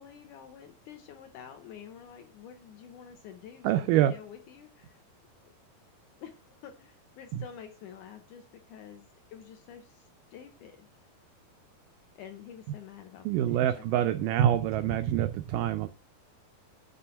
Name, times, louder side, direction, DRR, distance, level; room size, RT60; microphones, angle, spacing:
voice 1, 0.0-5.0 6.2-10.1 10.3-10.9 12.2-14.2 14.5-15.0 15.6-15.7, left 9 dB, 75° left, 6 dB, 2.0 m, -48 dB
voice 2, 3.6-4.1 7.3-7.4 13.3-15.9, right 11 dB, 85° right, 10 dB, 1.9 m, -26 dB
7.7 x 5.5 x 6.9 m, 0.37 s
omnidirectional pair, 4.3 m